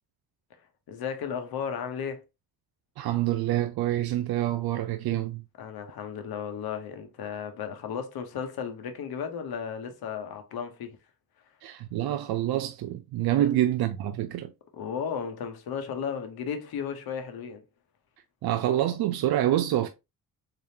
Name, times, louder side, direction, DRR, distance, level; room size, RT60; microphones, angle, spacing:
voice 1, 0.9-2.2 5.6-11.0 13.4-13.5 14.7-17.6, left 7 dB, 85° left, 1.0 m, -34 dB
voice 2, 3.0-5.4 11.6-14.5 18.4-19.9, right 13 dB, 90° right, 0.5 m, -26 dB
3.8 x 3.4 x 2.7 m
cardioid pair, 95°, 36 cm